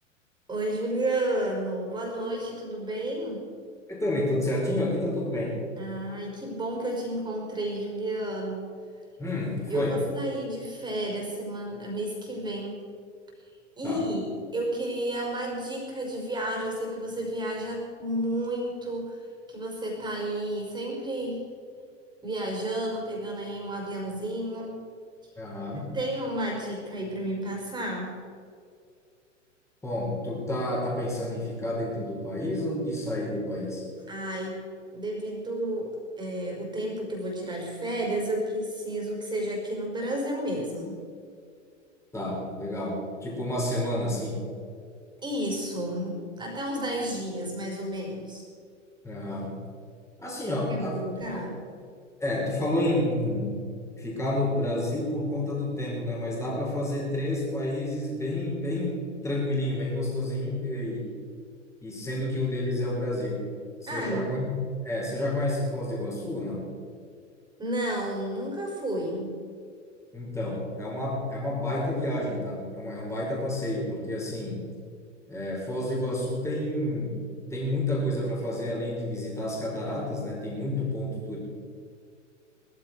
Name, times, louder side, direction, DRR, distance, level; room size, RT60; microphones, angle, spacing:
voice 1, 0.5-3.5 5.8-8.7 9.7-12.8 13.8-19.2 19.5-21.5 22.2-24.8 25.7-28.2 34.1-34.6 34.9-41.0 45.2-48.5 50.7-51.6 63.9-64.4 67.6-69.4, right 1 dB, 10° right, 0 dB, 5.0 m, -31 dB
voice 2, 3.9-5.6 9.2-10.0 13.8-14.1 25.4-26.0 29.8-33.9 42.1-44.5 49.0-49.6 50.2-51.0 51.3-51.5 52.2-53.7 54.0-61.1 61.8-63.5 63.8-64.5 64.8-66.7 70.1-74.7 75.3-77.2 77.5-81.4, left 1 dB, 10° left, -4 dB, 5.2 m, -30 dB
19.5 x 15.0 x 4.7 m, 2.3 s
figure-of-eight pair, 100°, 37 cm